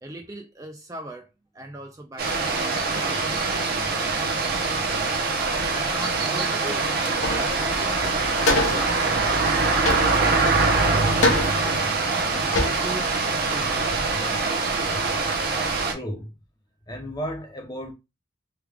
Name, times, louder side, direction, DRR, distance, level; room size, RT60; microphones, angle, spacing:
voice 1, 0.0-1.3 1.5-4.3 5.7-8.3 8.6-11.7 12.3-13.2 13.5-13.9 14.2-14.5, right 1 dB, 15° right, 0.3 m, -40 dB
sound 1, 2.2-15.9, right 3 dB, 50° right, 0.7 m, -23 dB
sound 2, 7.0-7.6 7.9-8.0 8.4-8.9 9.8-10.5 11.2-11.8 12.3-12.4 12.5-13.0, left 2 dB, 70° left, 0.8 m, -24 dB
voice 2, 15.9-16.3 16.9-17.9, equal, 20° left, 0.6 m, -33 dB
3.2 x 2.3 x 3.4 m
head